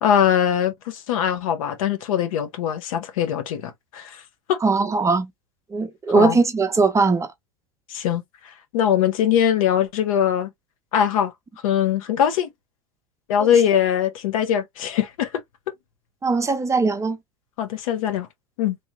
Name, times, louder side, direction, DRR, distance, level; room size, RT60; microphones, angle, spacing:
voice 1, 0.0-4.2 4.5-4.6 6.1-6.4 7.9-8.2 8.7-10.5 10.9-11.3 11.6-12.5 13.3-15.3 17.6-18.3 18.6-18.8, left 9 dB, 75° left, 1.1 m, -21 dB
voice 2, 4.6-5.3 5.7-7.3 13.4-13.5 16.2-17.2, right 4 dB, 15° right, 0.8 m, -20 dB
3.3 x 2.7 x 2.9 m
hypercardioid pair, 105°, 18 cm